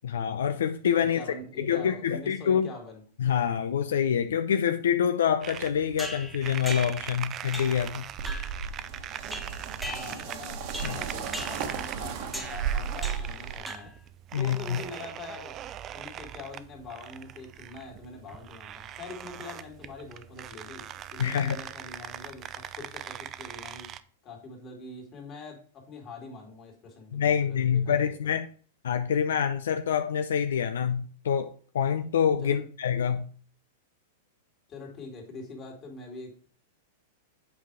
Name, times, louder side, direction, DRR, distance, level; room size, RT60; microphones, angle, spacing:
voice 1, 0.0-1.2 1.6-2.7 3.2-8.1 10.8-11.0 14.3-14.8 21.2-21.6 27.1-28.5 28.8-33.3, left 8 dB, 80° left, 0.5 m, -26 dB
voice 2, 1.0-3.0 9.8-13.9 14.3-15.6 15.9-23.9 24.2-28.3 32.4-32.6 34.7-36.5, left 3 dB, 30° left, 2.5 m, -44 dB
sound 1, 5.4-24.0, right 10 dB, 30° right, 0.4 m, -41 dB
sound 2, 6.0-7.1 7.5-7.9 8.3-8.6 9.3-10.4 10.7-11.0 11.3-11.7 12.3-12.6 13.0-13.4 13.7-14.1, equal, ahead, 1.0 m, -39 dB
sound 3, 8.2-13.6, right 7 dB, 50° right, 1.2 m, -34 dB
8.0 x 4.2 x 4.8 m
hypercardioid pair, 130°, 0 cm